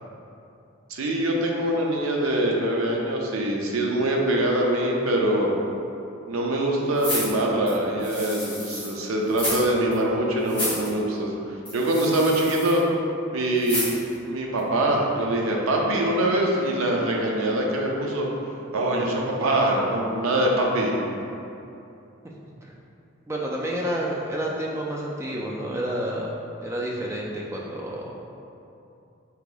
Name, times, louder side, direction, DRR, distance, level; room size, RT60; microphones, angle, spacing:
voice 1, 0.9-5.5 6.3-11.4 11.7-12.8 13.3-13.9 14.3-18.3 18.7-21.0, right 1 dB, 80° right, -1 dB, 0.5 m, -23 dB
sound 1, 7.0-8.9 9.3-9.7 9.9-10.0 10.4-10.9 11.6-12.8 13.6-14.1 14.6-14.7, left 1 dB, 10° left, 1.3 m, -31 dB
voice 2, 23.3-26.3 26.6-28.1, right 1 dB, 15° right, -3 dB, 0.3 m, -29 dB
2.9 x 2.8 x 3.8 m, 2.7 s
head